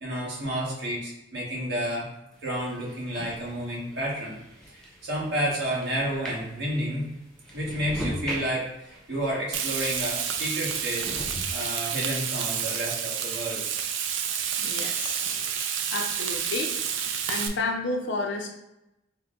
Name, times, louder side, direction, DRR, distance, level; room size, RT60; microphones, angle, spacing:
voice 1, 0.0-2.1 2.4-4.4 5.0-7.1 7.5-11.1 11.5-13.6, equal, 60° right, -4 dB, 1.4 m, -30 dB
sound 1, 2.3-10.2 10.7-11.6, right 1 dB, 5° left, 0.7 m, -40 dB
Frying (food), 9.5-17.5, right 8 dB, 85° right, 0.4 m, -29 dB
voice 2, 14.6-15.2 15.6-16.7 17.3-18.5, left 2 dB, 70° left, 2 dB, 0.6 m, -31 dB
4.4 x 2.2 x 3.7 m, 0.91 s
head